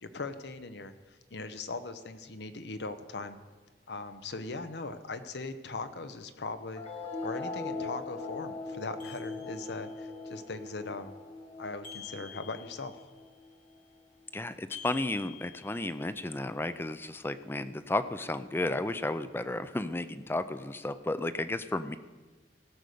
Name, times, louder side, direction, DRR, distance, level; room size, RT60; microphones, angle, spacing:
voice 1, 0.0-3.4 3.9-6.8 7.2-11.1 11.6-12.9, left 3 dB, 70° left, 10 dB, 0.8 m, -39 dB
sound 1, 6.7-13.7, left 3 dB, 35° left, 1.3 m, -41 dB
sound 2, 9.0-10.0 11.8-13.1 14.7-16.2, left 7 dB, 55° left, 2.4 m, -48 dB
voice 2, 14.3-22.0, left 2 dB, 15° left, 12 dB, 0.4 m, -33 dB
16.5 x 6.4 x 6.8 m, 1.3 s
head